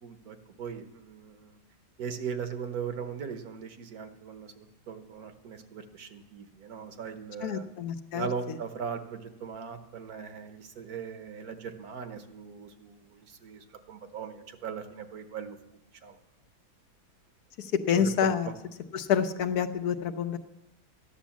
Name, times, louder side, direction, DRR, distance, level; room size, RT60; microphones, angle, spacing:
voice 1, 0.0-1.6 2.0-7.7 8.1-15.6 16.0-16.2 17.9-18.1, right 6 dB, 65° right, 8 dB, 1.5 m, -39 dB
voice 2, 7.4-8.3 17.6-18.5 18.9-20.4, left 8 dB, 70° left, 10 dB, 1.4 m, -27 dB
13.5 x 10.0 x 7.3 m, 0.89 s
omnidirectional pair, 1.8 m